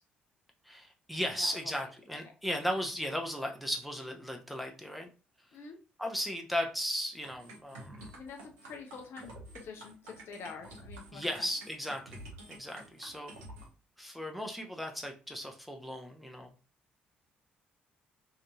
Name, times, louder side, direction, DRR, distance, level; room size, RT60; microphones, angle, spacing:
voice 1, 0.7-5.1 6.0-8.1 11.1-13.3 14.0-16.5, equal, ahead, 2 dB, 0.6 m, -36 dB
voice 2, 1.4-1.9 5.5-5.8 8.1-11.5, left 5 dB, 55° left, 4 dB, 0.5 m, -47 dB
sound 1, 7.2-13.7, right 1 dB, 70° right, 0.7 m, -49 dB
2.8 x 2.6 x 2.2 m, 0.35 s
figure-of-eight pair, 45°, 5 cm